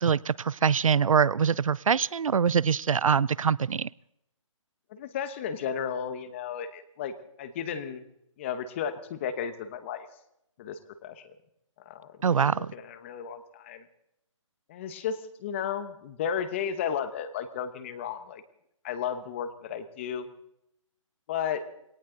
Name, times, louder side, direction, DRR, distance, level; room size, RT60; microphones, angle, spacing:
voice 1, 0.0-3.9 12.2-12.7, right 6 dB, 85° right, 0.6 m, -24 dB
voice 2, 4.9-8.1 8.4-10.1 10.6-11.4 11.8-13.8 14.7-18.4 18.8-20.3 21.3-21.6, left 8 dB, 25° left, 1.1 m, -34 dB
20.5 x 18.0 x 3.9 m
hypercardioid pair, 165°, 17 cm